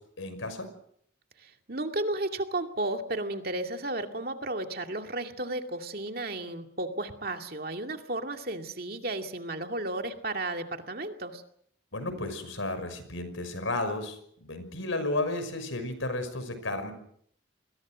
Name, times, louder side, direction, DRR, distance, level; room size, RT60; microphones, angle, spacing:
voice 1, 0.2-0.7 11.9-16.9, left 2 dB, 90° left, 10 dB, 5.9 m, -33 dB
voice 2, 1.4-11.4, right 2 dB, 50° right, 5 dB, 2.4 m, -33 dB
29.5 x 22.0 x 6.3 m, 0.67 s
head